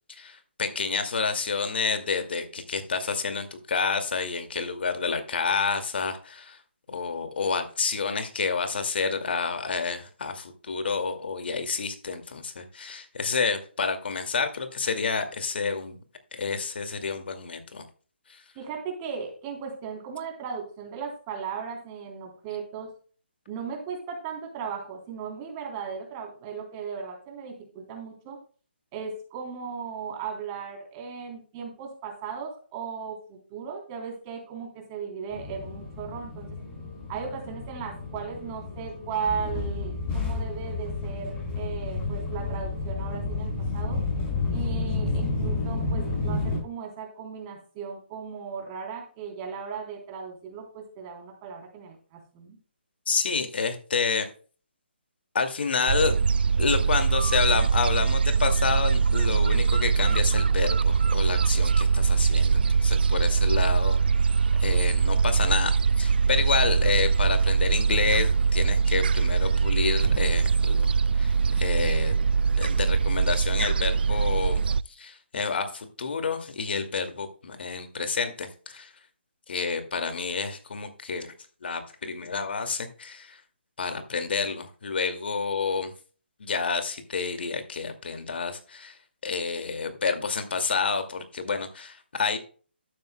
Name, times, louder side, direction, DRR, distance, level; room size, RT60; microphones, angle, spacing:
voice 1, 0.1-6.6 6.9-16.0 16.3-17.8 18.3-18.4 53.1-54.3 55.3-56.1 56.6-64.0 64.6-70.9 71.1-72.1 72.6-78.9 79.5-81.3 81.6-83.4 83.8-85.9 86.4-92.4, left 5 dB, 65° left, 7 dB, 2.3 m, -29 dB
voice 2, 18.6-22.9 23.5-28.4 28.9-36.6 37.1-44.0 44.5-52.6, right 6 dB, 25° right, 2 dB, 3.5 m, -36 dB
sound 1, 35.3-46.6, left 3 dB, 20° left, 5.0 m, -31 dB
Gull seagull, 55.9-74.8, right 5 dB, 60° right, 0.4 m, -22 dB
13.0 x 10.5 x 2.2 m, 0.39 s
hypercardioid pair, 155°, 6 cm